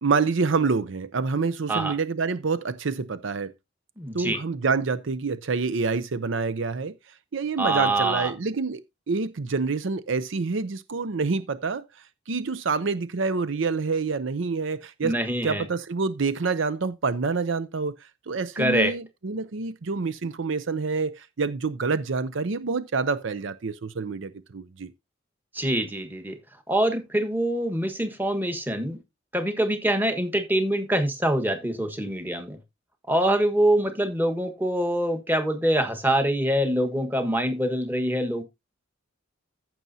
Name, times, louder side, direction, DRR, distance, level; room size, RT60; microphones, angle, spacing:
voice 1, 0.0-3.5 4.1-6.9 7.3-8.8 9.1-11.8 12.3-15.1 15.4-17.9 18.3-24.9, right 4 dB, 70° right, 0.6 m, -27 dB
voice 2, 4.0-4.4 7.6-8.3 15.0-15.7 18.6-19.0 25.5-26.4 26.7-29.0 29.3-32.6 33.1-38.4, right 1 dB, 10° right, 1.4 m, -25 dB
15.0 x 6.1 x 2.7 m
head